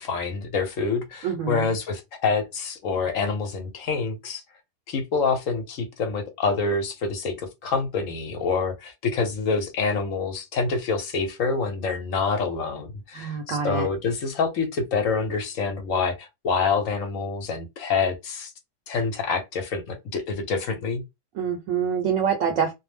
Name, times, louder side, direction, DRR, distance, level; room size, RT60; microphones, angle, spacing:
voice 1, 0.0-4.4 4.9-18.5 18.9-21.0, left 4 dB, 60° left, 1.0 m, -26 dB
voice 2, 1.2-1.7 13.1-13.9 21.4-22.7, right 7 dB, 65° right, 0.9 m, -26 dB
2.7 x 2.0 x 3.2 m
omnidirectional pair, 1.7 m